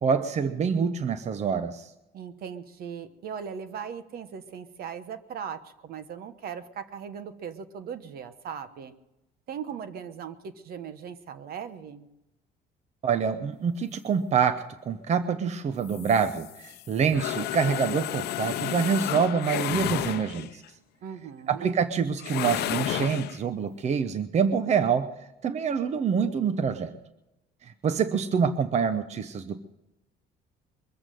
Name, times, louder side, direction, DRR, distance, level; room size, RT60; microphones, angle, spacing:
voice 1, 0.0-1.9 13.0-14.6 14.9-20.6 21.5-25.1 25.4-26.9 27.6-29.6, right 6 dB, 40° right, 11 dB, 0.9 m, -26 dB
voice 2, 2.1-8.9 9.5-12.1 21.0-21.7, right 7 dB, 65° right, 11 dB, 1.2 m, -39 dB
sound 1, 15.8-20.6 22.2-23.4, left 14 dB, 75° left, 0.7 m, -32 dB
22.5 x 7.9 x 7.7 m, 0.92 s
cardioid pair, 110°, 17 cm